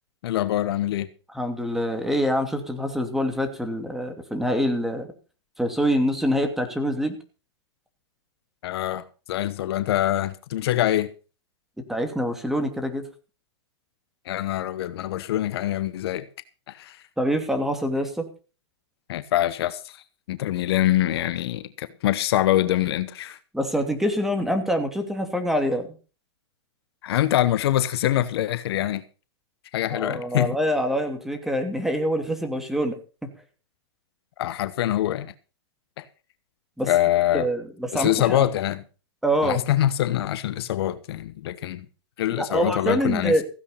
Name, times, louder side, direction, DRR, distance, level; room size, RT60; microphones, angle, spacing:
voice 1, 0.2-1.1 8.6-11.1 14.3-16.3 16.7-17.0 19.1-19.9 20.3-23.4 27.0-29.0 29.7-30.5 34.4-35.3 36.0-36.1 36.9-37.5 37.9-38.8 39.4-41.8 42.2-43.3, left 13 dB, 65° left, 1.1 m, -24 dB
voice 2, 1.3-5.1 5.6-7.1 11.9-13.0 17.2-18.2 23.5-25.9 29.9-33.0 36.8-36.9 37.3-38.5 39.2-39.6 42.4-43.4, equal, ahead, 2.7 m, -25 dB
15.5 x 8.3 x 5.7 m
hypercardioid pair, 125°, 14 cm